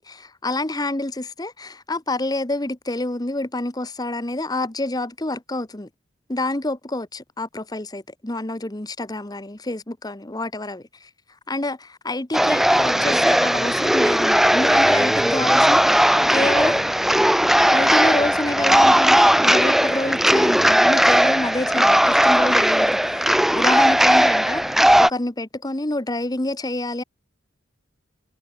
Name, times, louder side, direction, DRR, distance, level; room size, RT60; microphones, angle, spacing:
voice 1, 0.0-5.9 6.3-11.1 11.5-16.9 17.7-27.0, left 2 dB, 20° left, 1.1 m, -28 dB
sound 1, 12.3-25.1, equal, ahead, 0.4 m, -17 dB
head